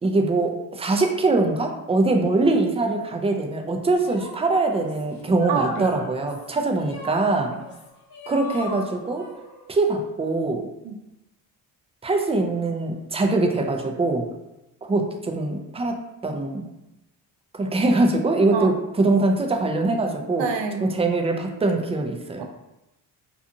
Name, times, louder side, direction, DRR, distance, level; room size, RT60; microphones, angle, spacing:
voice 1, 0.0-7.5 8.3-9.3 9.7-10.7 12.0-14.2 14.8-15.9 16.2-16.7 17.5-20.4 20.8-22.4, right 2 dB, 15° right, 3 dB, 0.3 m, -23 dB
sound 1, 3.9-9.9, left 2 dB, 55° left, 0.7 m, -40 dB
voice 2, 5.5-6.0 7.3-7.6 10.8-11.0 18.5-18.7 20.4-20.9 22.4-22.5, right 5 dB, 65° right, 4 dB, 0.6 m, -27 dB
2.6 x 2.4 x 2.7 m, 0.94 s
supercardioid pair, 60°, 47 cm